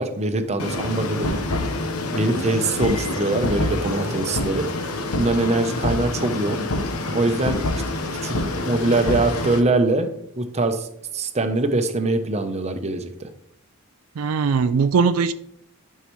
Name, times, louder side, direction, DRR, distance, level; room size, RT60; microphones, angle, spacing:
voice 1, 0.0-1.4 2.1-4.7 5.2-6.7 7.1-7.6 8.2-8.4 8.7-13.3, right 2 dB, 30° right, 0.8 m, -23 dB
sound 1, 0.6-9.6, left 2 dB, 90° left, 1.1 m, -26 dB
voice 2, 14.2-15.3, right 5 dB, 80° right, 0.4 m, -20 dB
11.5 x 5.7 x 3.1 m
head